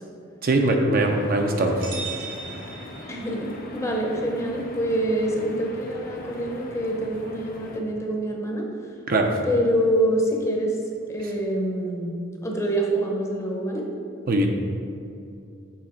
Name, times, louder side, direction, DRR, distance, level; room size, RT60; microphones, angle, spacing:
voice 1, 0.4-1.8 9.1-9.3 14.3-14.5, right 2 dB, 45° right, 3 dB, 0.5 m, -21 dB
sound 1, 0.9-7.8, left 1 dB, 45° left, 0.6 m, -41 dB
sound 2, 1.8-3.6, right 5 dB, 60° right, 1.4 m, -37 dB
voice 2, 3.1-8.7 9.4-10.8 11.1-13.9, right 1 dB, 15° left, 0 dB, 0.7 m, -26 dB
7.5 x 4.1 x 4.4 m, 2.5 s
head